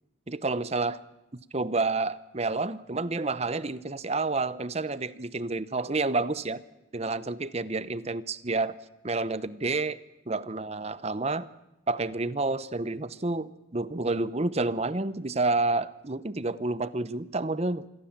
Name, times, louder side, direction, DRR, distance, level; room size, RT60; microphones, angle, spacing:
voice 1, 0.3-1.0 1.3-6.6 6.9-8.8 9.0-10.0 10.3-11.5 11.9-17.8, right 3 dB, 30° right, 16 dB, 0.8 m, -29 dB
27.0 x 21.5 x 7.4 m, 0.97 s
head